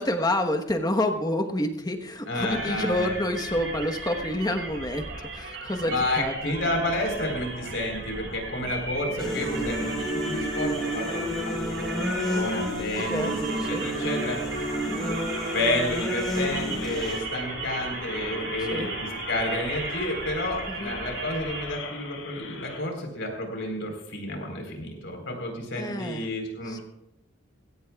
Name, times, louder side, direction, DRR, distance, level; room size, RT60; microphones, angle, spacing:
voice 1, 0.0-6.3 9.2-9.5 12.9-13.9 14.9-15.2 18.7-18.9 20.7-20.9 25.8-26.3 26.7-26.8, left 1 dB, 20° left, 4 dB, 1.2 m, -29 dB
voice 2, 2.3-3.1 5.8-13.3 13.7-14.6 15.0-15.1 15.5-26.8, left 1 dB, 70° left, 2 dB, 4.2 m, -30 dB
sound 1, 2.5-21.7, right 3 dB, 65° right, 6.8 m, -36 dB
sound 2, 9.2-17.2, equal, 5° left, 5.0 m, -30 dB
sound 3, 14.8-22.8, left 4 dB, 90° left, 4.5 m, -40 dB
20.0 x 17.0 x 2.4 m, 0.85 s
head